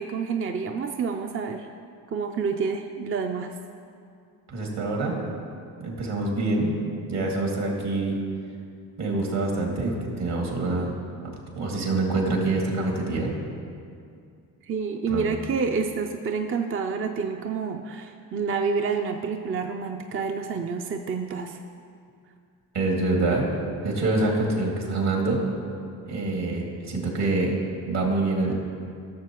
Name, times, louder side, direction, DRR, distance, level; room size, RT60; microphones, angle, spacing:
voice 1, 0.0-1.7 2.1-3.5 14.6-21.6, right 5 dB, 30° right, 4 dB, 0.5 m, -28 dB
voice 2, 4.5-5.2 5.8-6.7 7.1-8.2 9.0-10.9 11.5-13.3 15.1-15.3 22.7-23.4 23.8-25.4 26.0-27.5 27.9-28.5, right 2 dB, 65° right, -1 dB, 2.4 m, -25 dB
15.0 x 6.8 x 3.0 m, 2.4 s
supercardioid pair, 70°, 43 cm